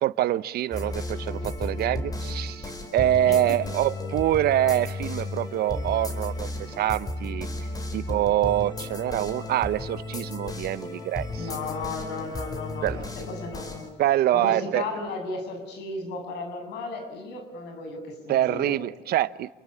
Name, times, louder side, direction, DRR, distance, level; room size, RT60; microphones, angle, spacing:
voice 1, 0.0-7.5 7.9-11.3 12.8-13.0 14.0-14.8 18.3-19.5, right 13 dB, 70° right, 16 dB, 1.0 m, -25 dB
sound 1, 0.7-13.9, left 2 dB, 20° left, 4.8 m, -34 dB
voice 2, 3.2-3.6 11.4-13.9 14.3-18.7, left 3 dB, 85° left, 6 dB, 7.8 m, -34 dB
29.5 x 22.5 x 8.5 m, 1.1 s
cardioid pair, 110°, 17 cm